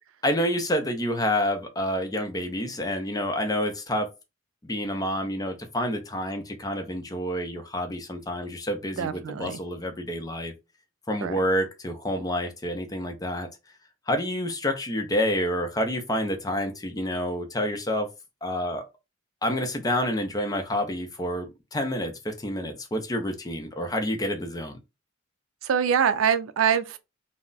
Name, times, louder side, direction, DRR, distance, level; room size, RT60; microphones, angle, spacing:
voice 1, 0.2-4.1 4.6-10.5 11.1-13.5 14.1-18.1 18.4-18.8 19.4-24.8, equal, 20° left, 0.5 m, -28 dB
voice 2, 9.0-9.6 11.2-11.4 25.6-27.0, right 8 dB, 90° right, 0.4 m, -24 dB
2.3 x 2.0 x 3.8 m
head